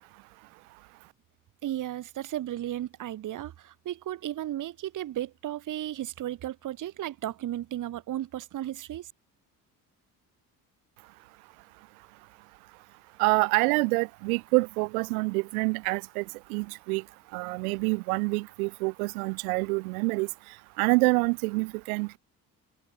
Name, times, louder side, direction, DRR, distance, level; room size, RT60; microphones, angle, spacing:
voice 1, 1.6-9.1, right 13 dB, 45° right, 0.9 m, -34 dB
voice 2, 13.2-16.2 16.5-17.0 17.3-20.3 20.8-22.2, right 28 dB, 85° right, 0.7 m, -26 dB
hypercardioid pair, 60°, 42 cm